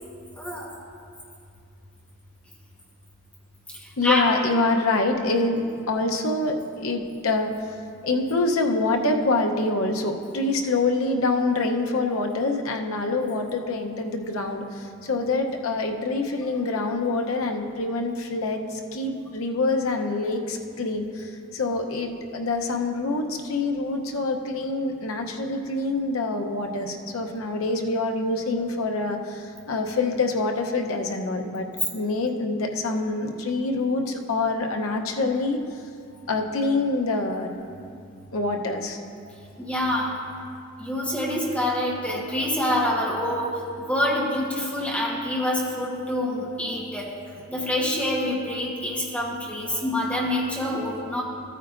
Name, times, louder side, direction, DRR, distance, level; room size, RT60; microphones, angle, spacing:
voice 1, 0.4-0.7 3.8-4.2 39.6-40.1 40.8-47.1 47.5-51.2, left 1 dB, 5° left, -4 dB, 1.2 m, -26 dB
voice 2, 4.0-7.5 8.0-35.8 36.3-37.6 38.3-39.0, left 3 dB, 85° left, 3 dB, 0.8 m, -26 dB
14.5 x 9.0 x 2.5 m, 2.4 s
head